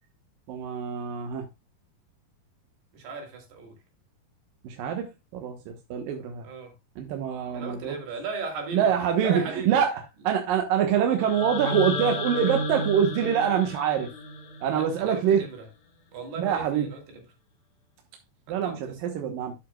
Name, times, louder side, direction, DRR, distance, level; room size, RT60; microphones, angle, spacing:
voice 1, 0.5-1.5 4.6-6.5 7.0-7.9 8.7-9.9 10.2-14.1 14.6-15.4 16.4-16.9 18.5-19.5, right 8 dB, 70° right, 2.7 m, -25 dB
voice 2, 2.9-3.8 6.4-6.8 7.5-9.8 14.7-15.7 16.1-17.3 18.5-19.0, right 4 dB, 90° right, 4.7 m, -37 dB
sound 1, 11.2-15.2, left 2 dB, 45° left, 2.3 m, -32 dB
12.5 x 7.9 x 2.3 m
omnidirectional pair, 4.5 m